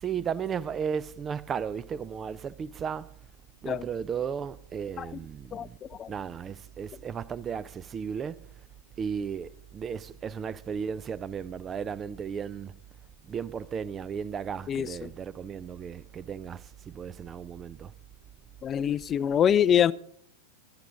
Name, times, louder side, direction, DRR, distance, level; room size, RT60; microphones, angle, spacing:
voice 1, 0.0-3.1 3.6-5.8 6.1-8.5 9.0-12.7 13.3-17.9, right 7 dB, 25° right, 0.5 m, -35 dB
voice 2, 14.7-15.1 18.6-19.9, left 9 dB, 25° left, 0.4 m, -24 dB
17.5 x 11.5 x 3.8 m
figure-of-eight pair, 90°, 0 cm